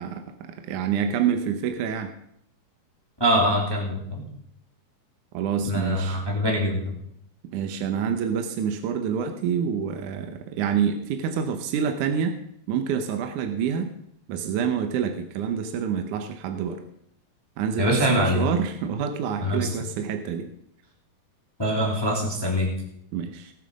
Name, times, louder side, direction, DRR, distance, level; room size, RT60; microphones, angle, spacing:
voice 1, 0.0-2.1 5.3-6.2 7.5-12.4 12.7-13.9 14.3-16.8 17.6-20.5 23.1-23.5, right 7 dB, 70° right, 6 dB, 2.0 m, -27 dB
voice 2, 3.2-4.2 5.6-6.9 17.8-18.4 19.4-19.7 21.6-22.7, equal, 10° left, -1 dB, 1.8 m, -23 dB
19.0 x 7.4 x 5.3 m, 0.73 s
omnidirectional pair, 4.3 m